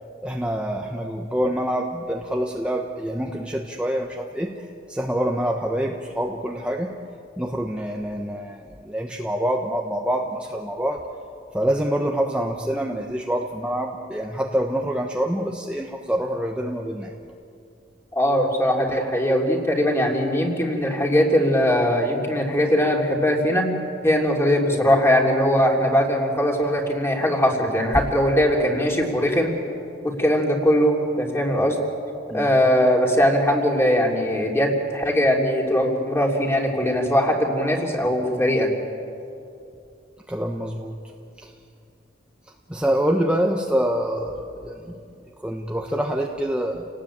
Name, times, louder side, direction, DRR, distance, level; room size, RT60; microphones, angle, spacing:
voice 1, 0.2-6.9 7.4-11.0 11.5-17.1 32.3-32.5 40.3-41.0 41.4-41.5 42.7-45.0 45.4-46.9, equal, 5° right, 1 dB, 1.1 m, -26 dB
voice 2, 18.1-23.7 24.0-29.5 30.0-31.8 32.3-38.7, equal, 15° left, 0 dB, 3.3 m, -20 dB
29.5 x 18.5 x 8.8 m, 2.6 s
head